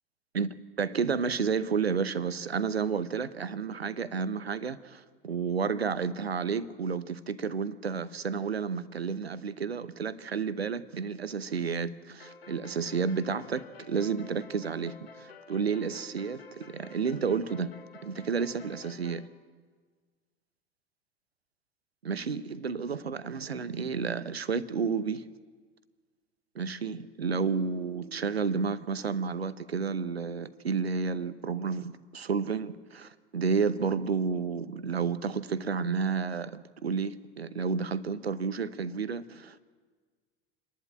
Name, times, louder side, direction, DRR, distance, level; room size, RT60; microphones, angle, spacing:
voice 1, 0.3-17.7 18.0-19.3 22.0-25.3 26.5-39.6, right 5 dB, 80° right, 0.8 m, -31 dB
sound 1, 12.2-19.3, left 4 dB, 70° left, 1.5 m, -50 dB
28.0 x 11.5 x 8.6 m
figure-of-eight pair, 75°, 31 cm